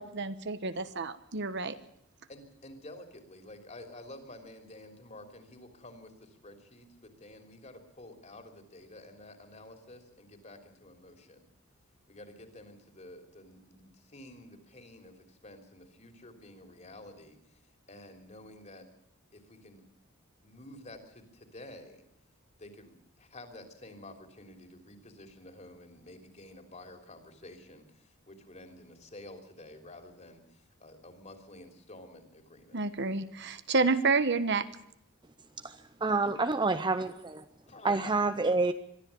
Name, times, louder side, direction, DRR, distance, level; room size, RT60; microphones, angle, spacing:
voice 1, 0.0-1.7 32.7-34.7, right 4 dB, 55° right, 11 dB, 1.3 m, -29 dB
voice 2, 2.3-11.4 12.1-17.6 17.9-18.9 19.3-19.8 20.4-22.0 22.6-32.8 37.7-38.1, left 1 dB, 35° left, 6 dB, 3.4 m, -50 dB
voice 3, 35.6-37.4 37.8-38.7, right 3 dB, 20° right, 10 dB, 0.7 m, -28 dB
22.5 x 13.5 x 8.5 m, 0.75 s
head